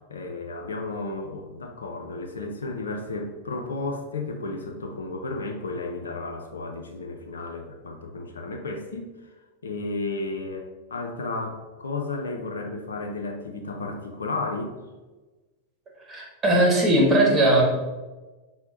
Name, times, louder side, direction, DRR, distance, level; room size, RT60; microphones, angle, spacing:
voice 1, 0.1-9.3 9.6-14.8, left 3 dB, 70° left, 4 dB, 0.5 m, -33 dB
voice 2, 16.1-17.6, right 1 dB, 20° right, -1 dB, 1.2 m, -19 dB
6.1 x 2.1 x 3.8 m, 1.2 s
figure-of-eight pair, 90°, 0 cm